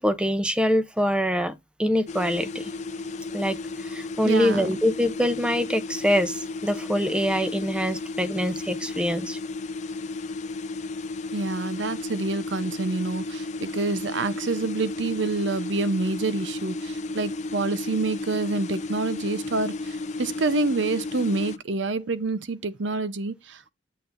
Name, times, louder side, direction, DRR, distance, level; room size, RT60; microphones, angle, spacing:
voice 1, 0.0-1.5 1.8-2.7 3.3-9.4, equal, 5° right, 0.6 m, -24 dB
sound 1, 2.1-21.6, left 2 dB, 35° left, 0.4 m, -33 dB
voice 2, 4.2-4.7 11.3-23.7, right 3 dB, 65° right, 0.7 m, -27 dB
9.2 x 7.9 x 2.5 m
head